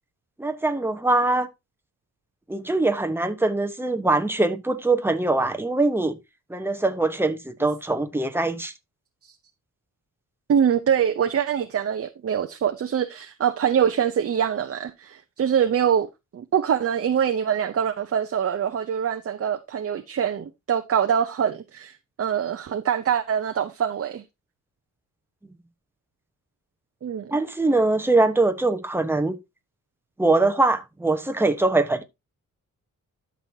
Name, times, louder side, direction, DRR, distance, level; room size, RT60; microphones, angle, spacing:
voice 1, 0.4-1.5 2.5-6.2 6.5-8.7 27.3-29.4 30.2-32.0, right 2 dB, 5° right, 1.1 m, -22 dB
voice 2, 10.5-16.1 16.3-24.2 27.0-27.4, right 8 dB, 45° right, 0.7 m, -24 dB
12.0 x 6.3 x 2.8 m
wide cardioid pair, 125°, 32 cm